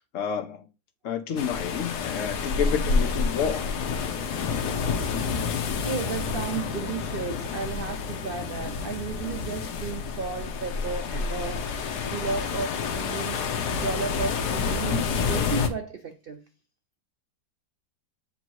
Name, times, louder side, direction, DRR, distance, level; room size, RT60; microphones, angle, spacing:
voice 1, 0.1-0.7 1.0-3.8, left 7 dB, 60° left, 0.9 m, -30 dB
sound 1, 1.4-15.7, left 5 dB, 80° left, 1.3 m, -29 dB
voice 2, 4.1-5.3 5.8-11.7 12.1-13.4 13.7-16.4, right 5 dB, 85° right, 0.5 m, -34 dB
7.9 x 2.8 x 4.5 m
omnidirectional pair, 1.7 m